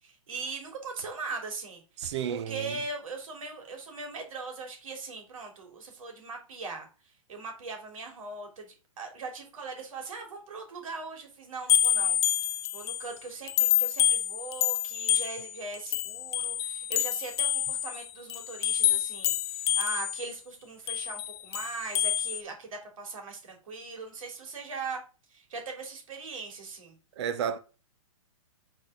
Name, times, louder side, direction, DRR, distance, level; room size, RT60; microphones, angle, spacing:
voice 1, 0.0-12.2 12.7-25.0 25.3-27.0, right 4 dB, 70° right, 3.0 m, -40 dB
voice 2, 2.0-2.8 27.2-27.6, right 8 dB, 50° right, 1.0 m, -32 dB
sound 1, 11.7-13.1 13.5-20.3 20.9-22.4, left 12 dB, 50° left, 0.4 m, -28 dB
6.2 x 4.4 x 4.7 m
hypercardioid pair, 155°, 18 cm